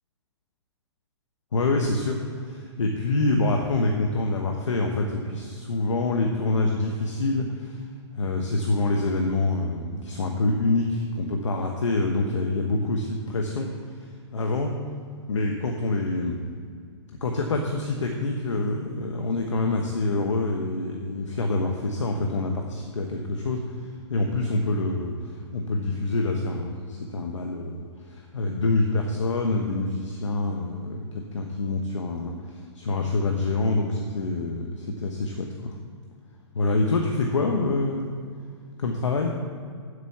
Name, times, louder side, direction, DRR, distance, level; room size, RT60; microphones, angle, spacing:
voice 1, 1.5-7.8 8.1-14.8 15.3-16.4 17.2-35.8 36.5-38.1 38.8-39.3, left 2 dB, 85° left, 2 dB, 1.1 m, -26 dB
8.2 x 6.9 x 7.1 m, 2.2 s
hypercardioid pair, 135°, 15 cm